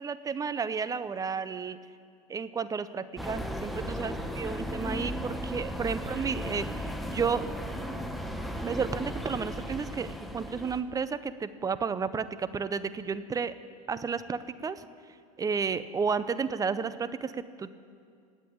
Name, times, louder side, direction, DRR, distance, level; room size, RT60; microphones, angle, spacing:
voice 1, 0.0-1.8 2.3-7.5 8.6-13.5 13.9-14.9 15.4-17.7, right 5 dB, 20° right, 14 dB, 0.6 m, -32 dB
sound 1, 3.2-10.8, equal, ahead, 1.1 m, -36 dB
19.0 x 8.2 x 8.7 m, 2.2 s
supercardioid pair, 115°, 19 cm